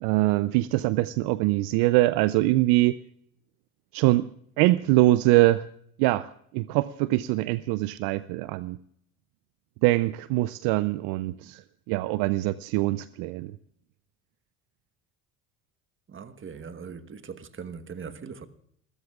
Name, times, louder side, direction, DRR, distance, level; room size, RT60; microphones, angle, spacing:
voice 1, 0.0-3.0 3.9-4.3 4.6-5.6 6.0-8.8 9.8-13.5, right 18 dB, 65° right, 0.6 m, -23 dB
voice 2, 16.1-18.5, right 6 dB, 30° right, 1.3 m, -40 dB
28.5 x 13.5 x 2.4 m
hypercardioid pair, 65°, 40 cm